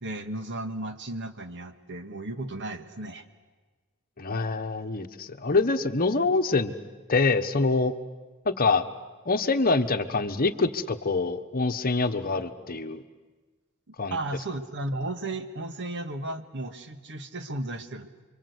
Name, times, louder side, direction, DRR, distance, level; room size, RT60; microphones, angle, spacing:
voice 1, 0.0-3.2 13.9-18.1, right 2 dB, 55° right, 8 dB, 1.7 m, -34 dB
voice 2, 4.2-6.7 7.1-7.9 8.4-8.9 9.2-13.0 14.0-14.2, left 3 dB, 45° left, 8 dB, 1.2 m, -25 dB
29.0 x 24.5 x 8.2 m, 1.3 s
head